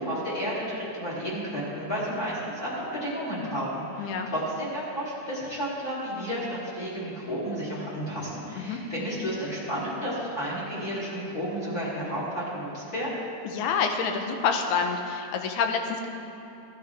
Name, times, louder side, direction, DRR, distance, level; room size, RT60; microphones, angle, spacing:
voice 1, 0.0-13.2, equal, 30° left, -8 dB, 3.2 m, -32 dB
voice 2, 4.0-4.3 8.6-8.8 13.5-16.1, left 5 dB, 85° left, 5 dB, 2.2 m, -27 dB
16.0 x 10.5 x 3.4 m, 2.8 s
omnidirectional pair, 3.3 m